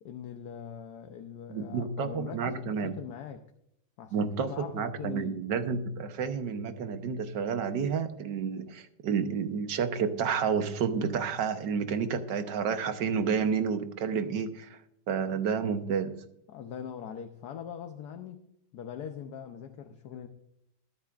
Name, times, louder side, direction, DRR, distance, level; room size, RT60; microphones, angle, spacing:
voice 1, 0.0-3.4 4.0-5.4 16.5-18.4 18.7-20.3, left 8 dB, 70° left, 6 dB, 1.3 m, -41 dB
voice 2, 1.5-3.0 4.1-14.8 15.1-16.2, right 6 dB, 85° right, 9 dB, 1.6 m, -30 dB
21.5 x 10.5 x 2.5 m, 0.75 s
omnidirectional pair, 1.9 m